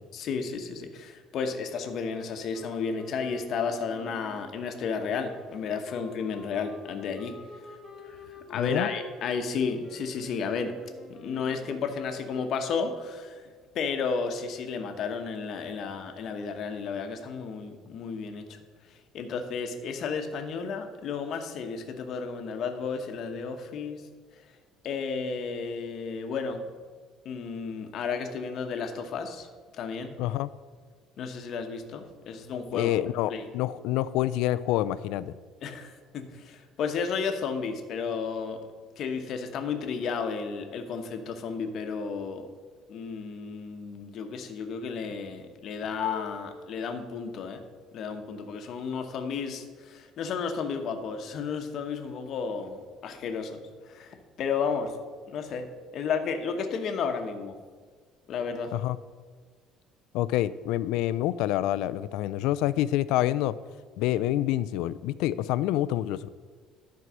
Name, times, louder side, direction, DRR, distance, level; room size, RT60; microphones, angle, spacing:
voice 1, 0.1-7.4 8.1-8.2 8.5-10.7 11.1-13.4 13.7-18.6 19.1-24.0 24.8-26.6 27.2-29.5 29.8-30.2 31.2-32.9 33.3-33.4 35.6-38.6 39.0-42.5 42.9-47.6 47.9-53.6 53.9-54.9 55.3-55.7 55.9-57.6 58.3-58.7, left 5 dB, 45° left, 5 dB, 0.9 m, -32 dB
sound 1, 2.5-12.9, left 4 dB, 15° left, 1.3 m, -49 dB
voice 2, 8.5-8.9 30.2-30.5 32.7-35.3 58.7-59.0 60.1-63.5 64.0-66.3, left 14 dB, 80° left, 16 dB, 0.3 m, -27 dB
11.0 x 4.7 x 6.1 m, 1.5 s
cardioid pair, 165°, 0 cm